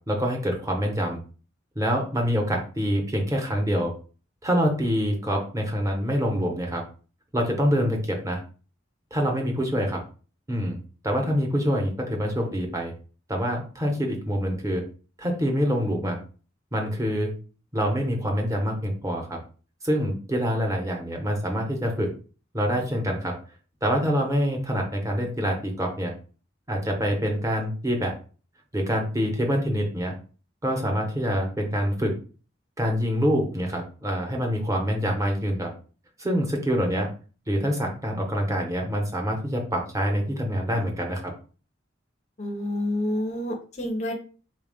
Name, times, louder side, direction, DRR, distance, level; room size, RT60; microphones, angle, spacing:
voice 1, 0.1-1.2 1.8-3.9 4.4-6.8 7.3-8.4 9.1-10.0 10.5-10.8 11.0-12.9 13.3-14.8 15.2-16.2 16.7-17.3 17.7-19.4 19.8-22.1 22.5-23.4 23.8-26.1 26.7-28.1 28.7-30.1 30.6-32.1 32.8-35.7 36.2-37.1 37.5-41.2, equal, 15° right, 2 dB, 0.8 m, -25 dB
voice 2, 42.4-44.1, left 1 dB, 35° left, 3 dB, 0.5 m, -28 dB
4.1 x 2.3 x 3.5 m, 0.38 s
head